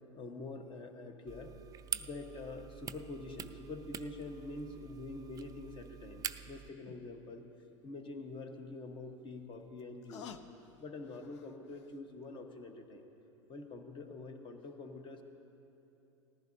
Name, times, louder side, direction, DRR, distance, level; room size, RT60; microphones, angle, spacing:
voice 1, 0.1-1.5 1.9-7.5 7.8-10.3 10.8-13.1 13.5-15.2, left 2 dB, 30° left, 5 dB, 1.3 m, -46 dB
sound 1, 1.3-6.7, right 9 dB, 25° right, 0.4 m, -45 dB
sound 2, 6.4-6.5 6.9-7.0 8.9-12.0 12.4-12.5, left 8 dB, 65° left, 0.7 m, -53 dB
19.0 x 14.5 x 2.7 m, 3.0 s
hypercardioid pair, 85°, 16 cm